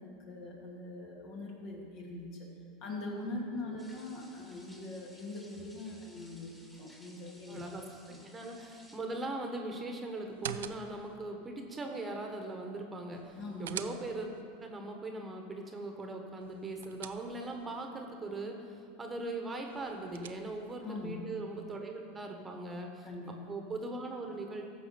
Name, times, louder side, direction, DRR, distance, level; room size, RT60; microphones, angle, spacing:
voice 1, 0.0-2.5 2.8-7.6 8.1-8.2 13.4-13.7 20.8-21.2 23.0-23.4, left 2 dB, 55° left, -2 dB, 2.7 m, -42 dB
sound 1, 3.8-9.0, equal, 10° left, 2.0 m, -59 dB
voice 2, 7.5-7.8 8.3-14.3 14.6-24.7, right 2 dB, 20° right, 3 dB, 1.3 m, -40 dB
sound 2, 10.2-11.2 13.1-14.4 16.4-17.7 19.6-20.8, right 10 dB, 80° right, 0.4 m, -45 dB
14.5 x 5.0 x 6.9 m, 2.3 s
hypercardioid pair, 95°, 0 cm